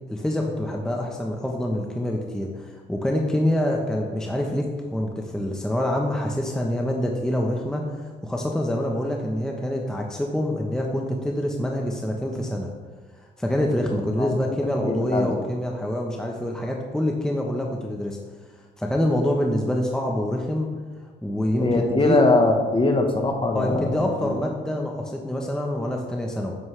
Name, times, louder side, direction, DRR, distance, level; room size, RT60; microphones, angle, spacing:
voice 1, 0.1-7.9 8.2-12.7 13.4-18.2 18.8-20.7 21.2-22.2 23.5-26.5, left 1 dB, 5° left, 0 dB, 0.9 m, -26 dB
voice 2, 14.8-15.3 21.6-24.3, left 2 dB, 25° left, 3 dB, 1.3 m, -21 dB
9.6 x 7.4 x 3.3 m, 1.4 s
cardioid pair, 90°, 20 cm